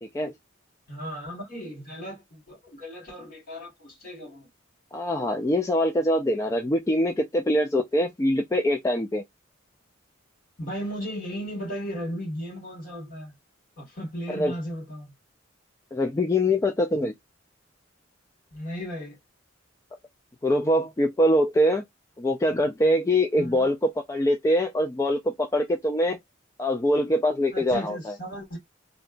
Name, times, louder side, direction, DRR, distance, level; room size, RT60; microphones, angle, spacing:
voice 1, 0.0-0.3 4.9-9.2 14.3-14.6 15.9-17.1 20.4-21.8 22.2-26.2 26.6-28.1, left 1 dB, 15° left, 0.3 m, -23 dB
voice 2, 0.9-4.5 10.6-13.3 13.8-15.1 18.5-19.2 23.4-23.7 27.5-28.6, equal, 45° left, 1.9 m, -36 dB
2.8 x 2.2 x 2.5 m
head